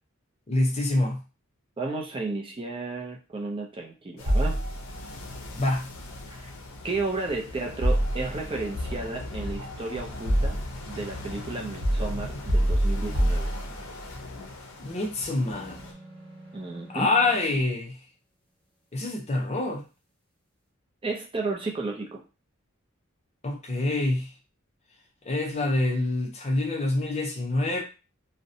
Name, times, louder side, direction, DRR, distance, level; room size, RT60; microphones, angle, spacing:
voice 1, 0.5-1.2 5.5-5.9 14.8-15.8 16.9-18.0 18.9-19.8 23.4-24.3 25.2-27.8, left 2 dB, 30° left, 0.5 m, -26 dB
voice 2, 1.8-4.6 6.3-6.5 6.8-10.6 10.9-13.5 16.5-17.1 21.0-22.2, right 3 dB, 25° right, 0.4 m, -33 dB
sound 1, 4.2-15.9, left 2 dB, 75° left, 0.5 m, -40 dB
sound 2, 4.3-5.1 7.8-8.7 9.6-10.9 11.8-14.0, right 1 dB, 90° right, 0.8 m, -25 dB
sound 3, 15.4-17.7, right 1 dB, 5° left, 1.3 m, -47 dB
2.6 x 2.1 x 2.6 m
head